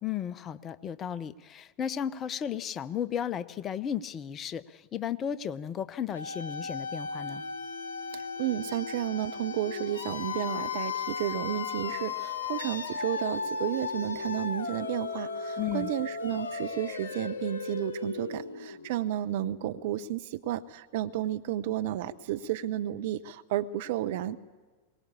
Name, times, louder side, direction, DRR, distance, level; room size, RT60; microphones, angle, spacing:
voice 1, 0.0-7.4 15.6-15.9, left 9 dB, 25° left, 16 dB, 0.7 m, -34 dB
sound 1, 6.1-18.9, left 5 dB, 70° left, 1.1 m, -35 dB
voice 2, 8.1-24.4, right 12 dB, 50° right, 11 dB, 0.8 m, -32 dB
22.5 x 19.0 x 8.6 m, 1.3 s
figure-of-eight pair, 90°, 0 cm